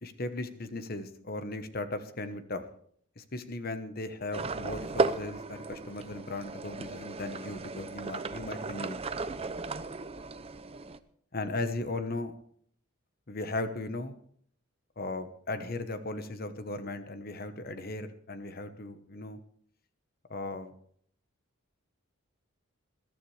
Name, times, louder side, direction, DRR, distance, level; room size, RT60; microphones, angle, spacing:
voice 1, 0.0-2.6 3.2-9.0 11.3-12.3 13.3-14.1 15.0-19.4 20.3-20.7, left 2 dB, 45° left, 10 dB, 1.1 m, -37 dB
sound 1, 4.3-11.0, right 3 dB, 25° right, 0.5 m, -35 dB
21.0 x 12.0 x 3.3 m, 0.62 s
head